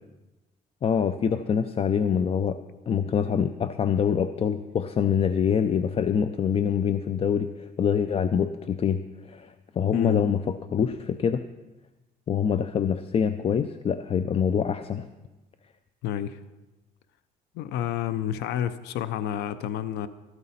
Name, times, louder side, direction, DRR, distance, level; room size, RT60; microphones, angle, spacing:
voice 1, 0.8-2.6 2.9-11.4 12.3-15.1, left 7 dB, 35° left, 11 dB, 0.5 m, -25 dB
voice 2, 16.0-16.4 17.5-20.1, left 10 dB, 85° left, 14 dB, 0.6 m, -29 dB
13.5 x 12.5 x 4.2 m, 1.1 s
cardioid pair, 110°, 17 cm